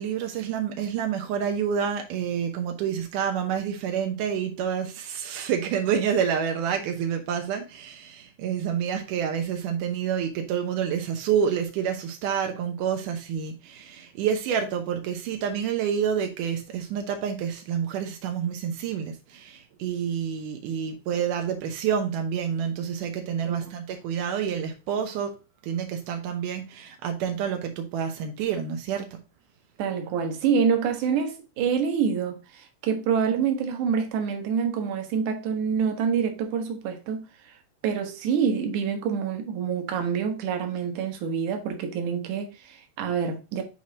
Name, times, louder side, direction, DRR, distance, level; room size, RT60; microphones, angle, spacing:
voice 1, 0.0-25.3 25.6-29.2, right 8 dB, 85° right, 1.8 m, -28 dB
voice 2, 29.8-37.6 37.8-43.6, right 6 dB, 65° right, 2.0 m, -27 dB
9.0 x 4.5 x 2.8 m
omnidirectional pair, 4.9 m